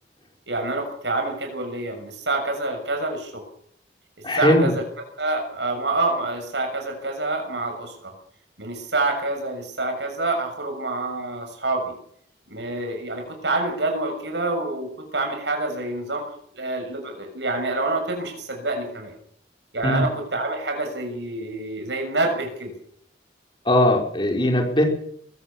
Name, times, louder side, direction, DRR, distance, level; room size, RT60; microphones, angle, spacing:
voice 1, 0.5-3.4 4.4-4.8 5.2-8.1 8.6-12.0 12.5-19.1 19.7-22.7, right 2 dB, 75° right, 4 dB, 6.8 m, -27 dB
voice 2, 4.2-4.7 19.8-20.0 23.6-24.8, left 1 dB, 25° left, 2 dB, 5.0 m, -19 dB
23.0 x 16.5 x 7.2 m, 0.65 s
head